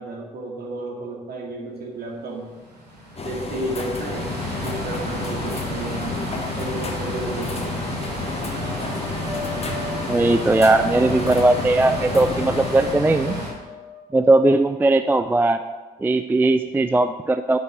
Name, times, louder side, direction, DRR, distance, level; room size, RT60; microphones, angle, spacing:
voice 1, 0.0-2.5 3.2-4.3 4.6-6.2 6.5-7.7, right 2 dB, 50° right, 0 dB, 2.2 m, -32 dB
sound 1, 2.6-13.5, left 1 dB, 85° right, 1.3 m, -31 dB
sound 2, 3.2-12.9, left 3 dB, 30° left, 1.2 m, -32 dB
sound 3, 8.5-14.4, left 2 dB, 85° left, 3.2 m, -37 dB
voice 2, 10.1-13.4 14.1-15.6 16.0-17.6, right 2 dB, 10° right, 10 dB, 0.3 m, -18 dB
9.0 x 5.9 x 6.1 m, 1.3 s
figure-of-eight pair, 45°, 21 cm